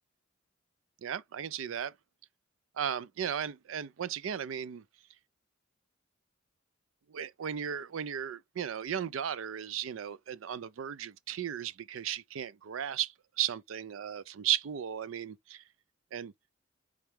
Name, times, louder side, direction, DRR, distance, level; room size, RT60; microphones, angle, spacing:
voice 1, 1.0-1.9 2.8-4.8 7.1-15.6 16.1-16.3, right 9 dB, 90° right, 0.4 m, -35 dB
4.4 x 3.5 x 3.4 m
head